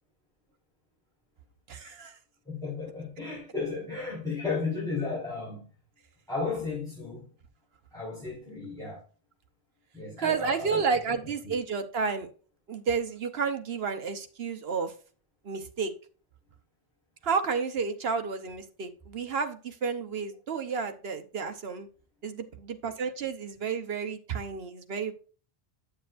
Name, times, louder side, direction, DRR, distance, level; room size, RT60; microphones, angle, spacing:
voice 1, 1.7-2.2 10.2-12.3 12.7-14.9 15.4-15.9 17.2-21.9 22.2-25.1, right 5 dB, 70° right, 1.2 m, -31 dB
voice 2, 2.5-5.7 6.3-7.2 7.9-9.0 9.9-10.8 11.4-11.5, left 4 dB, 5° left, 4.4 m, -34 dB
9.2 x 7.3 x 2.5 m
omnidirectional pair, 1.1 m